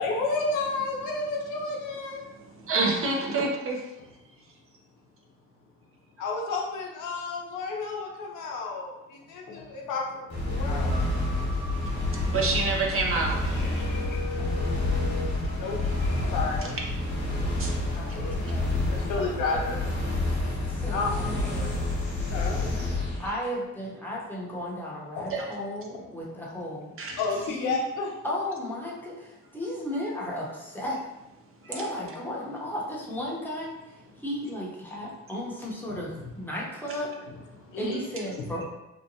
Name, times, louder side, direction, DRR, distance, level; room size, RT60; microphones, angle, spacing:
voice 1, 0.0-2.2 6.2-8.9 9.3-10.3 10.6-11.0 13.6-15.3 15.6-15.8 16.3-16.6 18.0-18.7 19.1-19.8 20.9-21.7 22.3-22.5 27.2-28.1 32.0-32.5 37.7-38.0 38.4-38.5, left 3 dB, 90° left, -1 dB, 0.6 m, -31 dB
voice 2, 2.2-3.9 12.3-13.6 16.6-16.7 17.6-17.8 18.1-18.5 25.3-25.5 27.0-27.2 31.6-31.8, right 3 dB, 45° right, 0 dB, 0.6 m, -28 dB
sound 1, 10.3-23.3, left 2 dB, 55° left, 1.1 m, -28 dB
sound 2, 10.9-16.9, right 1 dB, 75° right, 0.9 m, -46 dB
voice 3, 20.7-21.7 23.2-26.9 27.5-27.8 28.2-31.1 31.7-33.7 34.2-37.1 37.8-38.6, left 1 dB, 5° left, -5 dB, 0.8 m, -34 dB
2.8 x 2.1 x 2.7 m, 0.97 s
cardioid pair, 90°, 30 cm